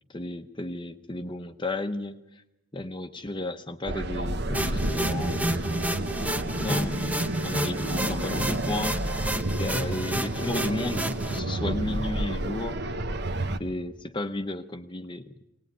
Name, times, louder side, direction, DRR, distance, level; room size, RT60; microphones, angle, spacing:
voice 1, 0.1-2.4 2.7-5.5 6.6-9.3 9.6-12.8 13.6-15.3, left 2 dB, 25° left, 8 dB, 0.8 m, -34 dB
sound 1, 3.9-13.6, right 1 dB, 60° right, 1.2 m, -30 dB
sound 2, 4.5-11.4, right 1 dB, 10° right, 0.8 m, -31 dB
21.0 x 19.0 x 9.2 m, 0.94 s
head